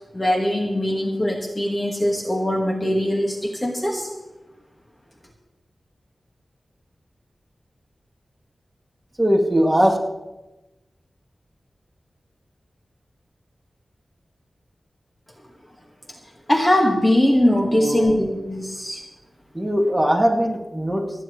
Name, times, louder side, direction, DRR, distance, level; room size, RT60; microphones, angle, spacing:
voice 1, 0.1-4.1 16.5-19.0, left 1 dB, 20° left, 0 dB, 1.7 m, -21 dB
voice 2, 9.2-10.0 17.7-18.1 19.5-21.2, equal, 10° right, -1 dB, 2.3 m, -20 dB
29.0 x 9.9 x 3.2 m, 1.0 s
wide cardioid pair, 105°, 0 cm